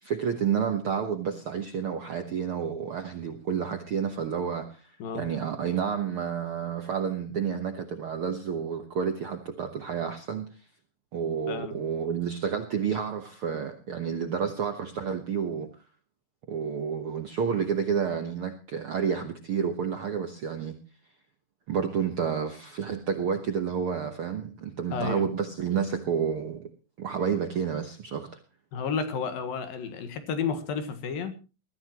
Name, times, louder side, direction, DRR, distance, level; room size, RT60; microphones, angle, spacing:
voice 1, 0.0-10.5 11.1-15.7 16.5-20.8 21.7-26.7 27.0-28.3, right 7 dB, 65° right, 6 dB, 1.3 m, -30 dB
voice 2, 24.9-25.3 28.7-31.4, left 6 dB, 75° left, 9 dB, 3.3 m, -31 dB
21.5 x 14.0 x 3.0 m, 0.32 s
omnidirectional pair, 4.1 m